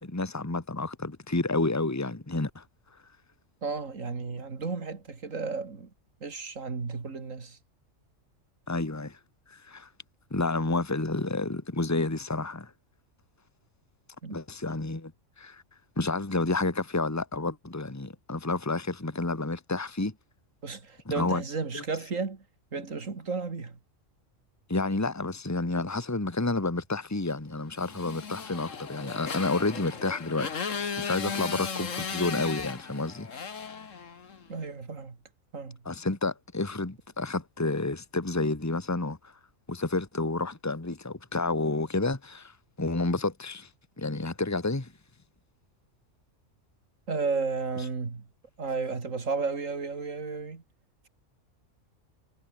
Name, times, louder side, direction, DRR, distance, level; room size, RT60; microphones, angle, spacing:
voice 1, 0.0-2.6 8.7-9.2 9.5-9.9 10.3-12.7 14.3-15.1 15.4-15.6 16.0-20.1 21.0-21.4 21.7-21.8 24.7-30.6 30.9-33.3 35.8-39.3 39.7-43.7 44.0-44.9, left 2 dB, 15° left, 1.6 m, -30 dB
voice 2, 3.6-5.9 6.2-7.6 14.2-14.4 20.6-22.4 22.7-23.8 34.5-35.2 35.5-35.8 47.1-48.3 48.6-50.6, right 4 dB, 85° right, 2.8 m, -33 dB
Motorcycle, 27.8-34.5, left 6 dB, 80° left, 2.0 m, -36 dB
omnidirectional pair, 1.3 m